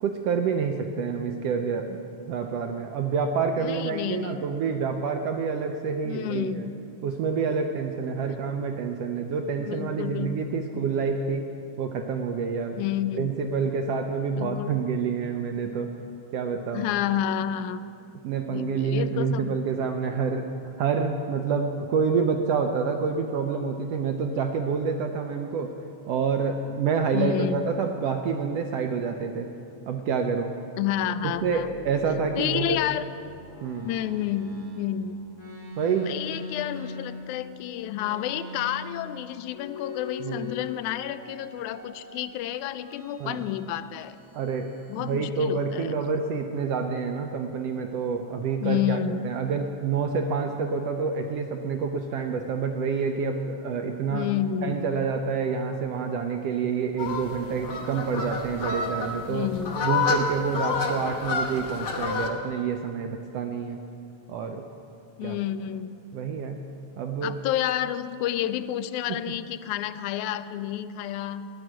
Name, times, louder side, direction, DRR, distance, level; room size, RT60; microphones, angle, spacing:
voice 1, 0.0-2.0 2.3-6.7 7.0-11.5 11.8-12.8 13.2-15.9 16.3-16.9 18.2-25.7 26.1-29.5 29.9-30.5 31.2-32.8 33.6-33.9 35.8-36.1 40.2-40.5 43.2-43.4 44.3-54.3 54.6-59.5 59.8-63.8 64.3-64.7 65.2-65.4 66.1-66.6 67.0-67.4 69.1-69.2, right 5 dB, 80° right, 4 dB, 1.4 m, -28 dB
voice 2, 3.6-4.4 6.0-6.8 9.6-10.4 10.7-10.9 12.8-13.4 14.4-14.7 16.7-17.8 18.5-19.6 27.1-27.7 30.8-31.7 32.4-33.0 33.9-35.2 36.0-44.2 44.9-46.0 48.6-49.3 54.1-55.0 59.3-59.8 65.2-66.0 67.2-71.5, left 11 dB, 90° left, 13 dB, 2.0 m, -30 dB
sound 1, 31.3-34.9 35.3-37.4 37.9-39.2 39.5-40.8 41.1-42.3 42.9-43.7 44.0-45.2, left 3 dB, 10° left, 0.8 m, -41 dB
sound 2, 57.0-62.3, left 4 dB, 55° left, 1.3 m, -29 dB
14.0 x 10.0 x 6.1 m, 2.6 s
omnidirectional pair, 3.4 m